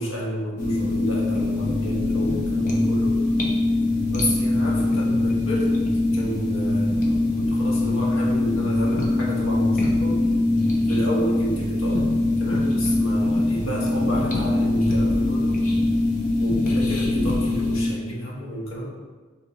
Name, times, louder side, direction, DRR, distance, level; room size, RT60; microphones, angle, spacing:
voice 1, 0.0-3.2 4.1-5.7 6.1-10.3 10.9-12.1 12.4-15.7 16.4-18.9, equal, 65° left, -3 dB, 1.0 m, -31 dB
sound 1, 0.6-17.9, left 2 dB, 35° left, 0.6 m, -22 dB
4.0 x 2.9 x 3.9 m, 1.4 s
head